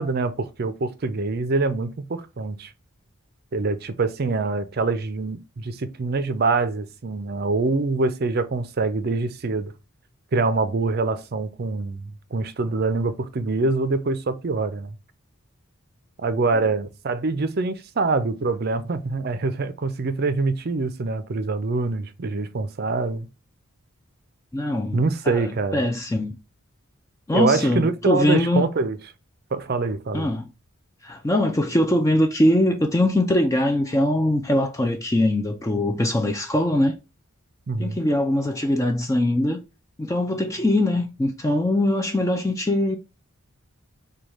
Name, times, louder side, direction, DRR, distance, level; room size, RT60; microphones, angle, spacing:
voice 1, 0.0-2.7 3.5-9.7 10.3-12.0 12.3-14.9 16.2-23.3 24.9-25.8 27.3-29.0 29.5-30.3 37.7-38.0, right 3 dB, 45° right, 0.5 m, -25 dB
voice 2, 24.5-26.4 27.3-28.6 30.1-30.5 31.0-37.0 37.8-39.6 40.0-43.0, left 1 dB, 15° left, 0.3 m, -22 dB
4.9 x 2.3 x 3.0 m
head